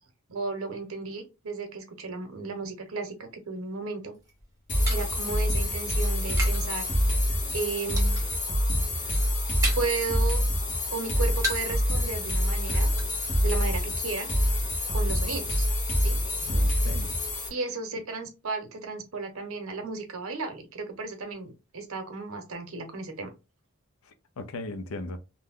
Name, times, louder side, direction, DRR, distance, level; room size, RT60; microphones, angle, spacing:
voice 1, 0.3-4.2 4.9-6.9 7.5-8.1 9.8-10.4 10.9-12.9 13.4-14.3 14.9-15.7 16.0-16.2 17.5-23.3, right 4 dB, 70° right, 0.8 m, -34 dB
sound 1, 4.1-6.7 7.0-7.5 8.0-8.5 8.8-10.0 10.4-11.8 12.1-12.2 12.5-13.0, right 1 dB, 15° right, 0.9 m, -36 dB
sound 2, 4.7-17.5, left 1 dB, 35° left, 1.0 m, -26 dB
voice 2, 16.4-17.5 17.9-18.0 24.0-25.2, left 2 dB, 70° left, 0.5 m, -39 dB
2.6 x 2.2 x 3.5 m
head